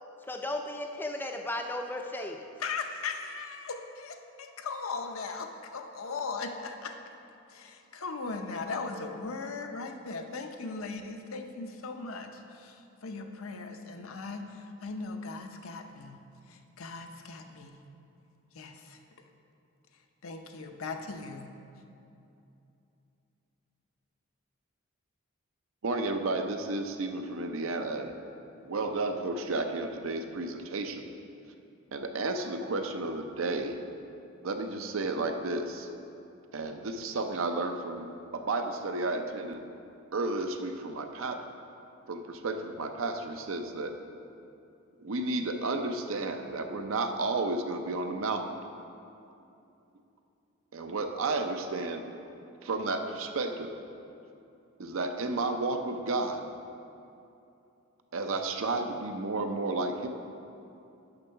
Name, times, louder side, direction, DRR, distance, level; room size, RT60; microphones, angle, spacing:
voice 1, 0.3-2.4, left 1 dB, 10° left, 4 dB, 0.4 m, -35 dB
voice 2, 2.6-7.0 7.5-16.2 16.5-17.8 18.5-19.0 20.2-21.5, left 4 dB, 75° left, 5 dB, 0.6 m, -38 dB
voice 3, 25.8-28.2 28.6-31.1 31.9-33.8 34.4-35.9 36.5-39.6 40.1-41.4 42.1-43.9 45.0-48.5 50.7-52.1 52.6-53.7 54.8-56.4 58.1-60.1, right 3 dB, 75° right, 6 dB, 0.6 m, -32 dB
6.7 x 6.2 x 5.7 m, 2.7 s
head